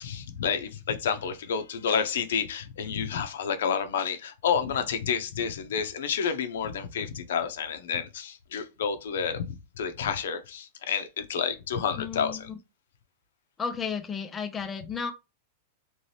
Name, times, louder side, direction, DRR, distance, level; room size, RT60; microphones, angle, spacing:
voice 1, 0.0-12.5, left 7 dB, 80° left, 0.6 m, -30 dB
voice 2, 12.0-12.5 13.6-15.1, left 6 dB, 15° left, 0.4 m, -33 dB
3.0 x 2.7 x 3.1 m
supercardioid pair, 150°, 0 cm